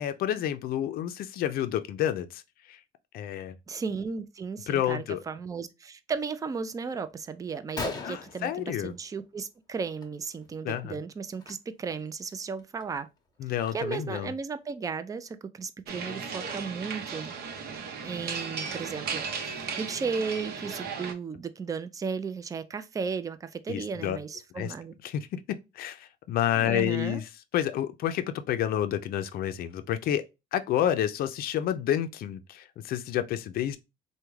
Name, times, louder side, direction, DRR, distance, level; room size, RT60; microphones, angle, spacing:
voice 1, 0.0-2.4 2.7-2.8 3.1-3.5 4.7-5.2 8.0-8.9 10.6-11.0 13.4-14.3 23.7-24.2 24.6-24.7 25.0-30.2 30.5-33.8, left 11 dB, 60° left, 0.4 m, -29 dB
voice 2, 3.7-13.1 13.7-17.3 18.0-25.0 26.6-27.2, right 5 dB, 20° right, 0.3 m, -35 dB
Gunshot gunfire, 7.1-7.2 7.5-7.6 7.8-9.4 9.7-10.1 10.3-10.5 11.3-11.5 12.1-12.2 12.6-14.2, left 3 dB, 25° left, 0.8 m, -39 dB
sound 1, 15.9-21.1, right 5 dB, 65° right, 0.7 m, -36 dB
3.4 x 2.2 x 3.1 m
cardioid pair, 110°, 17 cm